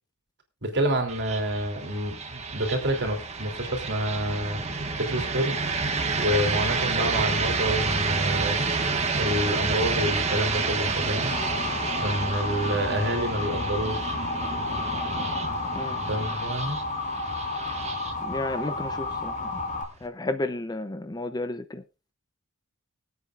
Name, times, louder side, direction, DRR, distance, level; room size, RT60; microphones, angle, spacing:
voice 1, 0.6-4.6 5.0-5.6 6.2-8.6 9.1-11.3 12.0-14.1 16.1-16.8, right 1 dB, 50° right, 3.3 m, -28 dB
sound 1, 1.1-20.0, right 4 dB, 30° right, 1.5 m, -30 dB
Motor vehicle (road) / Siren, 11.3-19.8, left 3 dB, 35° left, 1.8 m, -31 dB
voice 2, 18.2-19.5 20.0-21.8, left 2 dB, 20° left, 0.6 m, -32 dB
24.5 x 8.4 x 2.5 m
head